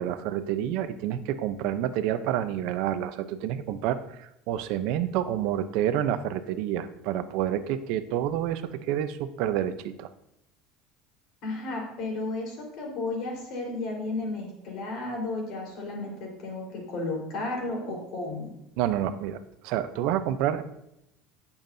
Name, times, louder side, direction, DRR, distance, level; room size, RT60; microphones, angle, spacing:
voice 1, 0.0-10.1 18.8-20.6, right 11 dB, 70° right, 11 dB, 0.6 m, -28 dB
voice 2, 11.4-18.5, left 2 dB, 55° left, 0 dB, 4.1 m, -33 dB
18.0 x 7.2 x 2.7 m, 0.81 s
cardioid pair, 150°, 0 cm